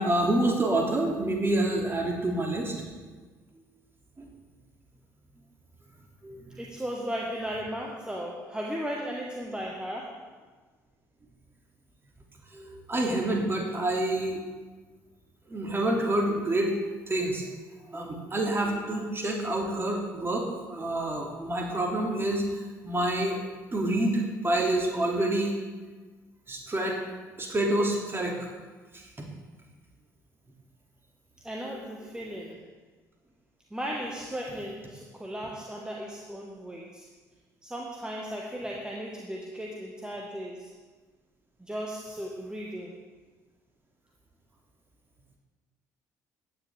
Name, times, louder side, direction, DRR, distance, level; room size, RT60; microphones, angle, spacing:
voice 1, 0.0-2.8 4.2-4.3 6.2-6.5 12.5-14.5 15.5-17.4 17.9-20.4 20.7-22.4 22.8-23.4 23.7-25.5 26.5-27.0 27.4-28.3, right 1 dB, 25° right, 0 dB, 2.7 m, -27 dB
voice 2, 6.6-10.3 31.4-32.7 33.7-37.1 37.6-40.7 41.6-43.0, equal, 10° right, -2 dB, 1.6 m, -36 dB
15.5 x 9.8 x 3.6 m, 1.3 s
figure-of-eight pair, 50°, 10 cm